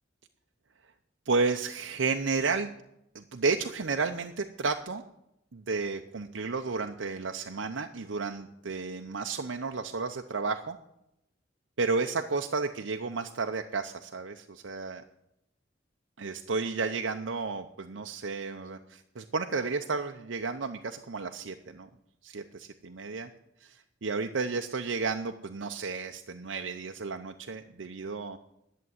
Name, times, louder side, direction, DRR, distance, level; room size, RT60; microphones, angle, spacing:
voice 1, 1.3-2.7 3.1-5.0 5.5-10.8 11.8-15.0 16.2-21.9 22.2-23.3 23.6-28.4, right 4 dB, 90° right, 5 dB, 0.7 m, -32 dB
11.0 x 7.5 x 9.4 m, 0.82 s
head